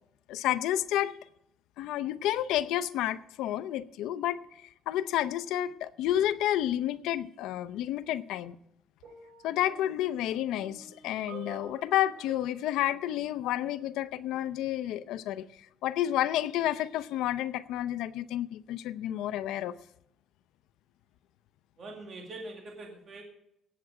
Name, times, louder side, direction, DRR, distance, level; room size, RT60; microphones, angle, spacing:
voice 1, 0.3-1.2 1.8-4.4 4.9-8.6 9.4-15.5 15.8-19.8, left 12 dB, 85° left, 13 dB, 0.6 m, -30 dB
sound 1, 9.0-14.1 15.0-15.2, right 6 dB, 85° right, 4.4 m, -51 dB
voice 2, 21.8-23.2, right 2 dB, 40° right, 1 dB, 2.1 m, -43 dB
17.5 x 7.7 x 4.9 m, 0.78 s
cardioid pair, 165°, 0 cm